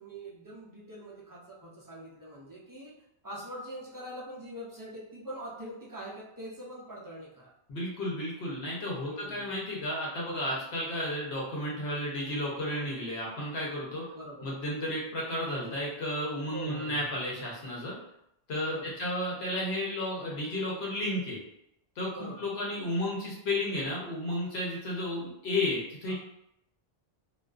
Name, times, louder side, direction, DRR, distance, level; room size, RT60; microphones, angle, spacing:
voice 1, 0.0-2.9 3.2-7.5 9.0-9.5 14.1-14.6 16.5-17.1 18.6-19.0 22.1-22.4 26.1-26.2, equal, 35° right, -5 dB, 0.3 m, -43 dB
voice 2, 7.7-14.1 14.4-17.9 18.5-21.4 22.0-26.1, left 1 dB, 80° left, -4 dB, 1.0 m, -33 dB
2.5 x 2.3 x 2.3 m, 0.78 s
omnidirectional pair, 1.1 m